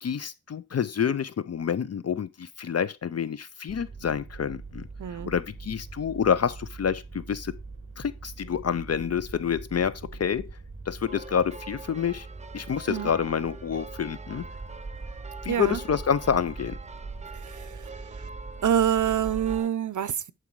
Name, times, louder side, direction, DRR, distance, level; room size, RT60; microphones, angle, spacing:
voice 1, 0.0-4.9 5.1-7.5 8.0-10.5 10.9-12.3 12.5-14.5 15.4-16.8, left 7 dB, 55° left, 0.5 m, -28 dB
sound 1, 3.7-19.6, right 3 dB, 45° right, 2.0 m, -42 dB
voice 2, 5.0-5.3 12.9-13.1 15.5-15.8 17.3-18.3 18.6-20.3, right 9 dB, 80° right, 0.6 m, -27 dB
sound 2, 11.1-19.7, right 4 dB, 25° right, 0.7 m, -45 dB
11.0 x 4.9 x 4.7 m
wide cardioid pair, 105°, 30 cm